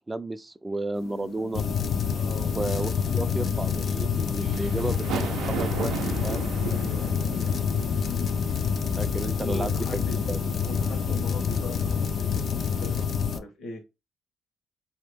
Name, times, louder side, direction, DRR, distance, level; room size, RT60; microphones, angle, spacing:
voice 1, 0.1-1.6 2.6-6.0 6.2-6.5 9.0-10.4, right 2 dB, 15° right, 0.4 m, -33 dB
sound 1, 0.9-13.1, left 7 dB, 90° left, 0.8 m, -42 dB
sound 2, 1.5-13.4, left 6 dB, 45° left, 0.4 m, -27 dB
voice 2, 2.1-2.5 6.7-7.5 9.4-10.2 10.6-13.8, left 2 dB, 65° left, 1.3 m, -40 dB
sound 3, 2.1-13.0, right 9 dB, 90° right, 0.4 m, -39 dB
4.2 x 2.8 x 3.4 m
cardioid pair, 140°, 0 cm